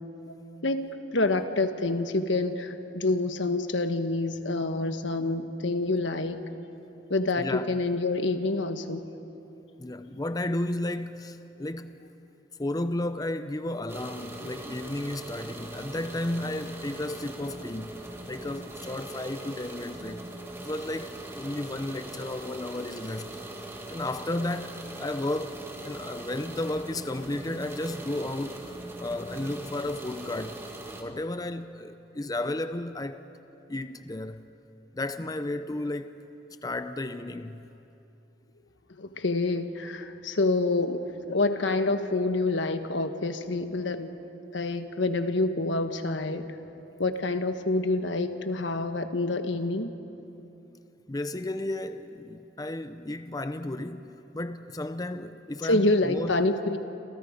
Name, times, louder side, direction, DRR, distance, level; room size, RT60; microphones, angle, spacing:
voice 1, 0.6-6.4 7.1-9.0 38.9-44.1 44.5-46.5 47.0-49.9 55.6-56.8, left 2 dB, 90° left, 1.3 m, -27 dB
voice 2, 7.4-7.8 9.8-12.0 12.6-20.2 20.6-23.4 23.9-28.7 29.0-30.6 31.0-33.2 33.7-34.5 34.9-36.1 36.6-37.7 51.1-56.5, left 1 dB, 20° left, 0.6 m, -33 dB
sound 1, 13.9-31.0, right 1 dB, 15° right, 1.8 m, -41 dB
28.0 x 27.5 x 5.2 m
head